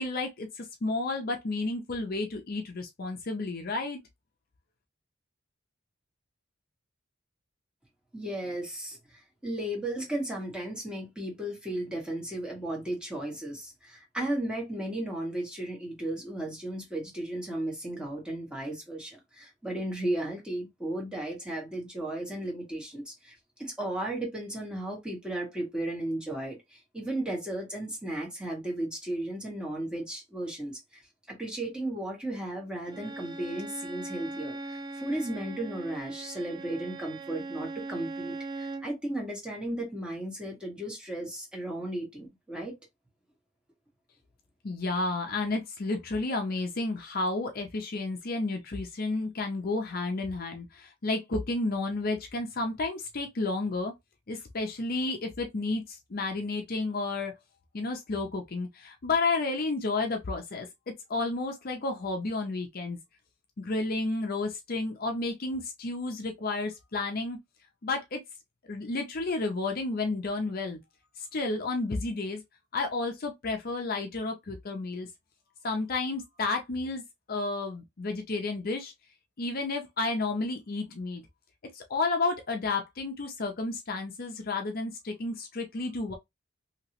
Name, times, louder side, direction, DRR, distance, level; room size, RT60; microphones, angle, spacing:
voice 1, 0.0-4.0 44.6-53.9 54.3-57.4 57.7-60.7 61.1-63.0 63.6-67.4 67.8-68.2 68.7-70.8 71.2-72.4 72.7-75.1 75.6-77.0 77.3-78.9 79.4-81.2 81.7-86.1, left 3 dB, 50° left, 0.6 m, -31 dB
voice 2, 8.1-31.0 31.3-42.8, right 1 dB, 5° right, 1.4 m, -35 dB
Bowed string instrument, 32.9-38.9, right 2 dB, 20° right, 0.3 m, -40 dB
2.9 x 2.9 x 2.9 m
head